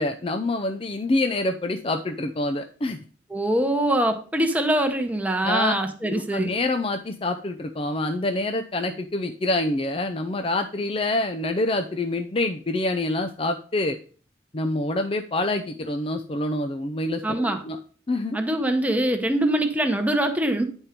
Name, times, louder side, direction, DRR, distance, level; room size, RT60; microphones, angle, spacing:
voice 1, 0.0-3.0 5.4-5.7 6.0-14.0 14.5-17.8 18.1-18.4, left 2 dB, 30° left, 6 dB, 0.5 m, -26 dB
voice 2, 3.3-6.5 17.2-17.6 18.3-20.6, right 1 dB, 10° right, 5 dB, 0.9 m, -23 dB
9.8 x 4.4 x 5.0 m, 0.41 s
head